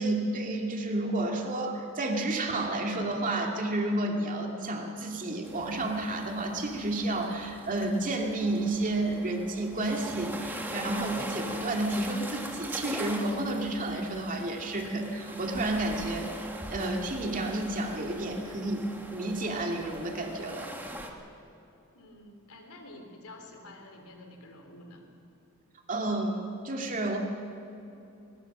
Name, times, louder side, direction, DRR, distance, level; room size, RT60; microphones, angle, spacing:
voice 1, 0.0-20.7 25.9-27.2, right 2 dB, 35° right, 1 dB, 2.5 m, -31 dB
sound 1, 5.4-21.1, right 1 dB, 10° right, 1.6 m, -41 dB
voice 2, 21.9-25.1, left 1 dB, 85° left, 3 dB, 3.5 m, -49 dB
20.5 x 20.5 x 6.2 m, 2.9 s
head